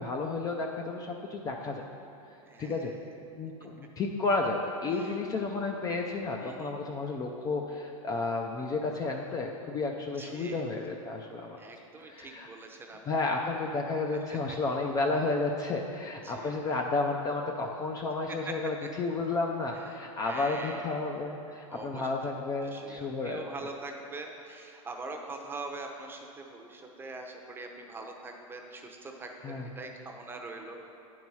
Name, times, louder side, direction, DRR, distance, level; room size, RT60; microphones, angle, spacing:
voice 1, 0.0-1.8 2.6-2.9 3.4-11.6 12.0-12.5 13.1-23.4 29.4-29.7, left 3 dB, 20° left, 1 dB, 0.4 m, -32 dB
voice 2, 2.5-3.1 3.8-3.9 4.9-5.2 6.4-6.7 10.2-10.7 11.6-13.0 13.9-14.4 16.2-16.7 18.3-18.5 18.8-18.9 19.7-21.0 21.7-30.8, right 3 dB, 10° right, 2 dB, 0.7 m, -43 dB
9.4 x 4.7 x 5.5 m, 2.7 s
hypercardioid pair, 135°, 18 cm